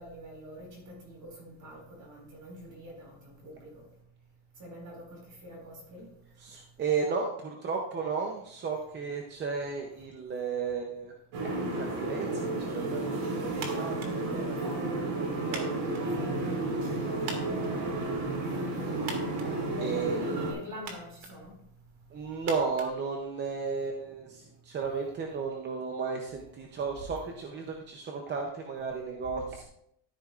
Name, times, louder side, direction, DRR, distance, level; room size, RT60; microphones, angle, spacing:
voice 1, 0.0-3.8 4.6-6.1 14.2-15.5 16.1-16.3 16.7-16.9 17.2-18.0 18.4-19.0 19.6-21.6 26.9-27.0, equal, 40° right, 0 dB, 4.7 m, -45 dB
voice 2, 6.4-11.1 11.5-14.6 15.1-15.7 19.8-20.2 22.1-29.6, right 5 dB, 25° right, 1 dB, 0.6 m, -34 dB
sound 1, 11.3-20.5, right 2 dB, 90° right, 4.1 m, -32 dB
sound 2, 13.5-23.7, right 4 dB, 70° right, 2.1 m, -46 dB
13.0 x 10.5 x 2.4 m, 0.73 s
cardioid pair, 180°, 49 cm